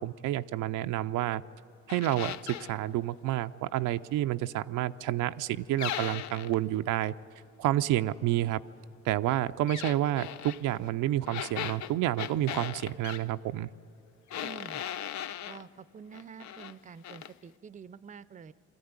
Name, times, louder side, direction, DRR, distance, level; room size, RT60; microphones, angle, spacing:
voice 1, 0.0-1.4 1.9-7.1 7.6-8.6 9.0-13.7, right 14 dB, 90° right, 10 dB, 0.5 m, -29 dB
sound 1, 1.9-2.7 5.8-6.6 9.7-10.6 11.3-13.2 14.3-15.6 16.1-16.7 17.0-17.3, left 10 dB, 65° left, 0.5 m, -38 dB
voice 2, 14.4-14.8 15.5-18.5, right 6 dB, 25° right, 17 dB, 0.5 m, -47 dB
22.0 x 14.0 x 9.5 m, 2.5 s
cardioid pair, 90°, 30 cm